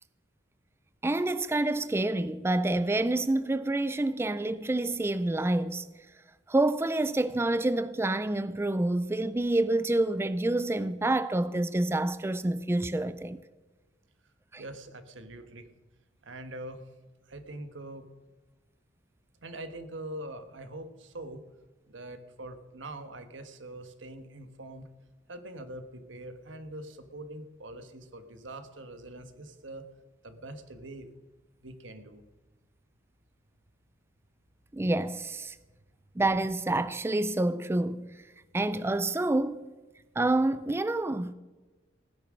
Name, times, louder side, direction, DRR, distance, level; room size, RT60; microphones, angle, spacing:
voice 1, 1.0-5.9 6.5-13.4 14.5-14.6 34.7-35.6 36.2-38.2 38.5-39.7 40.2-41.3, right 2 dB, 15° right, 0.4 m, -28 dB
voice 2, 14.6-15.7 16.2-16.8 17.3-18.1 19.4-21.4 21.9-24.9 25.3-29.8 30.2-31.1 31.6-32.2, right 1 dB, 85° right, 1.4 m, -43 dB
16.5 x 10.0 x 6.3 m
head